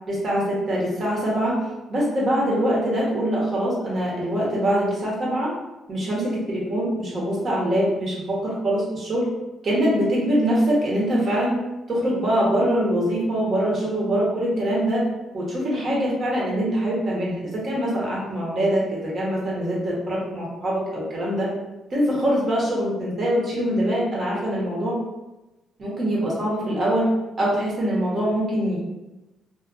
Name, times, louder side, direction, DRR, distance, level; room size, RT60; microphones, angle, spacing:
voice 1, 0.1-1.6 1.9-5.5 5.9-9.3 9.6-11.5 11.9-15.0 15.3-21.5 21.9-25.0 25.8-27.1 27.4-28.8, equal, 45° right, -5 dB, 1.1 m, -23 dB
2.4 x 2.4 x 2.6 m, 1.0 s
cardioid pair, 90°, 0 cm